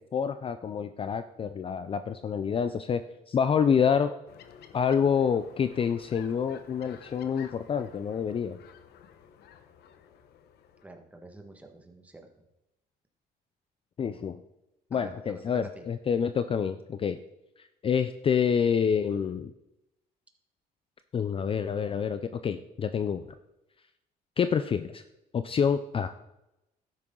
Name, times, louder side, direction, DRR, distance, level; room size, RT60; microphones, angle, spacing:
voice 1, 0.1-3.0 3.3-4.1 4.7-8.6 14.0-14.4 14.9-17.2 17.8-19.5 21.1-23.3 24.4-25.0 25.3-26.1, left 7 dB, 35° left, 11 dB, 0.5 m, -27 dB
sound 1, 4.3-10.8, left 8 dB, 75° left, 1.1 m, -52 dB
voice 2, 10.8-12.3 14.9-15.9, right 2 dB, 10° right, 3 dB, 1.6 m, -48 dB
12.0 x 9.7 x 3.9 m, 0.91 s
cardioid pair, 110°, 17 cm